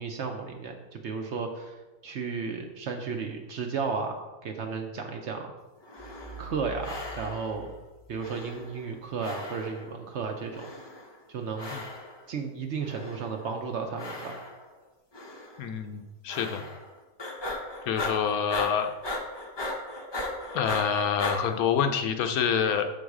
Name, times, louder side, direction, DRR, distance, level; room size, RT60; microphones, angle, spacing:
voice 1, 0.0-5.5 6.4-7.7 8.1-10.7 11.3-11.7 12.3-14.4, right 5 dB, 60° right, 3 dB, 0.8 m, -34 dB
sound 1, 5.8-6.5 6.8-7.6 8.2-8.9 9.2-9.9 10.5-11.2 11.6-12.2 12.8-13.5 14.0-14.7 15.1-15.6 16.3-16.9 17.2-21.4, left 2 dB, 30° left, 0.5 m, -37 dB
sound 2, 6.0-8.8, right 2 dB, 10° left, 0.8 m, -46 dB
voice 2, 15.6-16.6 17.9-18.9 20.5-22.8, left 7 dB, 75° left, 7 dB, 1.0 m, -27 dB
6.7 x 3.9 x 4.8 m, 1.1 s
omnidirectional pair, 1.6 m